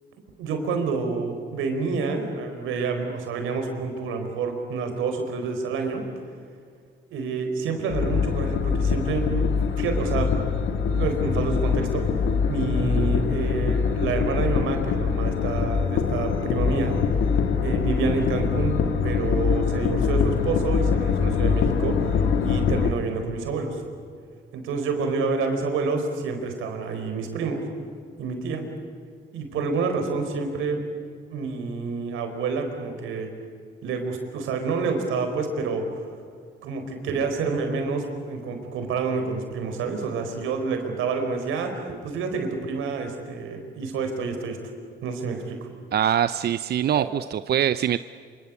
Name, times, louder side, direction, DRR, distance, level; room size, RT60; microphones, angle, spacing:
voice 1, 0.4-6.0 7.1-10.5 10.8-12.2 12.5-17.2 17.6-18.8 19.0-23.8 24.5-27.6 28.2-28.7 29.3-30.8 31.3-33.3 33.8-35.9 36.6-44.6 45.0-45.6 46.9-47.1, right 4 dB, 90° right, 6 dB, 4.4 m, -28 dB
sound 1, 7.9-22.9, left 6 dB, 80° left, 2.2 m, -24 dB
voice 2, 45.9-48.0, right 10 dB, 55° right, 13 dB, 0.6 m, -23 dB
26.5 x 25.5 x 8.5 m, 2.1 s
cardioid pair, 90°, 20 cm